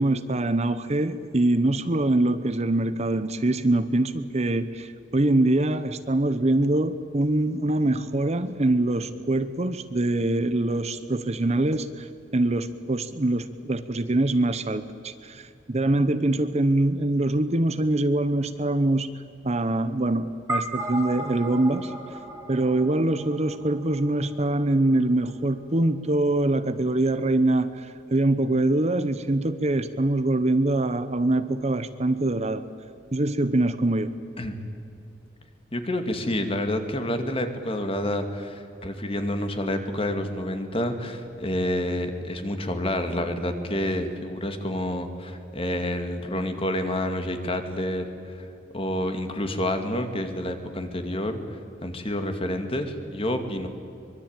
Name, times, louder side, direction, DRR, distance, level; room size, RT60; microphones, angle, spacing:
voice 1, 0.0-12.1 12.3-19.1 19.4-21.9 22.5-32.6 33.1-34.1, right 2 dB, 35° right, 11 dB, 0.9 m, -24 dB
sound 1, 20.5-25.1, right 1 dB, 15° right, 2.8 m, -35 dB
voice 2, 35.7-48.1 48.4-48.5 48.7-53.7, left 1 dB, 30° left, 6 dB, 2.3 m, -28 dB
24.5 x 23.0 x 9.0 m, 2.6 s
head